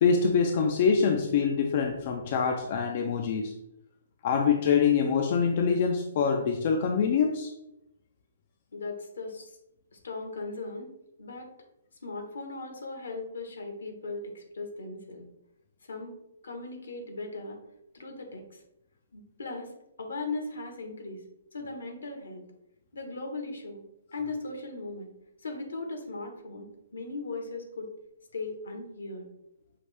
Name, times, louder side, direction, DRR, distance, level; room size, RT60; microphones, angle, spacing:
voice 1, 0.0-3.5 4.2-7.5, left 6 dB, 50° left, 3 dB, 0.4 m, -25 dB
voice 2, 8.7-9.5 9.9-10.9 11.2-11.5 12.0-15.2 15.9-16.2 16.4-17.6 17.9-18.6 19.1-19.7 20.0-21.2 21.5-22.4 22.9-23.8 24.1-25.1 25.4-27.9 28.3-29.3, left 3 dB, 75° left, 4 dB, 1.0 m, -38 dB
5.6 x 2.5 x 3.2 m, 0.84 s
figure-of-eight pair, 130°, 0 cm